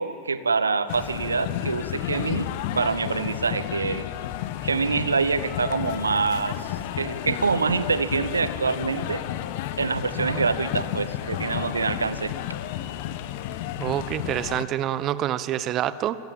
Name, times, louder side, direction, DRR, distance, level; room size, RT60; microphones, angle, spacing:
voice 1, 0.0-2.5 2.7-4.1 4.6-6.7 7.0-9.2 9.8-12.3, right 4 dB, 75° right, 14 dB, 1.1 m, -25 dB
sound 1, 0.9-14.6, left 12 dB, 50° left, 1.3 m, -32 dB
voice 2, 13.7-16.2, right 12 dB, 35° right, 15 dB, 1.1 m, -27 dB
29.0 x 21.5 x 9.0 m, 2.5 s
figure-of-eight pair, 90°, 0 cm